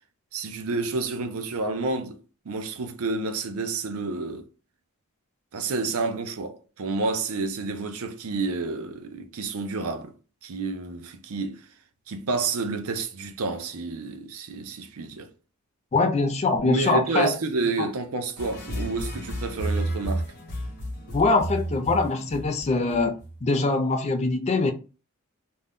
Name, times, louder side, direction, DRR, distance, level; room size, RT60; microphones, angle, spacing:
voice 1, 0.3-2.2 2.5-4.5 5.5-10.1 10.4-11.7 12.1-15.3 16.7-20.3, right 3 dB, 70° right, 0.5 m, -29 dB
voice 2, 15.9-17.4 17.8-17.9 21.1-24.7, left 3 dB, 30° left, 0.4 m, -23 dB
sound 1, 18.4-23.4, right 1 dB, 50° left, 1.1 m, -32 dB
2.6 x 2.2 x 3.4 m
head